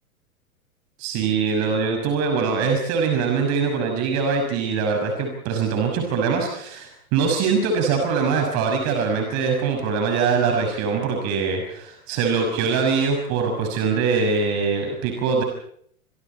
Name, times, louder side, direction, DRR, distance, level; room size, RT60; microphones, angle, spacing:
voice 1, 1.0-15.4, right 5 dB, 40° right, 3 dB, 6.3 m, -23 dB
28.0 x 26.0 x 4.4 m, 0.63 s
figure-of-eight pair, 95°, 42 cm